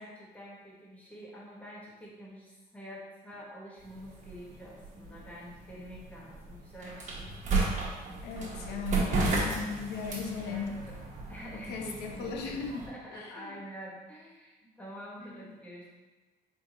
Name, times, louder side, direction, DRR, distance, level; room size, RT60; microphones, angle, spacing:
voice 1, 0.0-7.4 10.4-15.9, equal, 10° left, -5 dB, 1.2 m, -47 dB
sound 1, 3.8-12.9, right 2 dB, 45° right, 1.1 m, -34 dB
voice 2, 8.2-10.7 11.7-12.8 13.1-13.5 15.2-15.4, left 5 dB, 75° left, 3 dB, 0.7 m, -37 dB
4.2 x 3.5 x 2.9 m, 1.2 s
cardioid pair, 110°, 17 cm